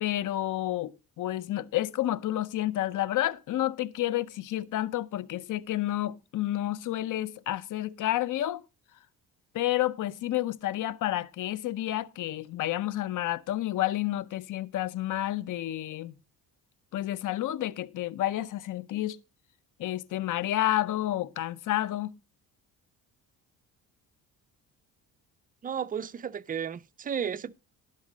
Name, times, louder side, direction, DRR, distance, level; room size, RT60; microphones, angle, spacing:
voice 1, 0.0-8.6 9.5-16.1 16.9-19.2 19.8-22.1, left 14 dB, 50° left, 0.6 m, -30 dB
voice 2, 25.6-27.5, right 7 dB, 20° right, 0.4 m, -33 dB
11.5 x 5.2 x 5.0 m
supercardioid pair, 80°, 40 cm